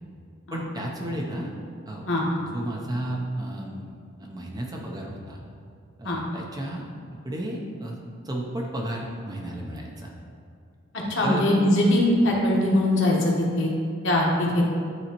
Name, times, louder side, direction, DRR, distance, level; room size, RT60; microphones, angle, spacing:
voice 1, 0.5-1.5 1.9-3.9 4.2-5.4 6.0-6.9 7.2-10.1 11.2-11.5, right 1 dB, 20° right, -1 dB, 0.6 m, -33 dB
voice 2, 11.1-13.7 14.0-14.6, left 1 dB, 60° left, -3 dB, 1.2 m, -21 dB
9.2 x 4.1 x 3.0 m, 2.3 s
head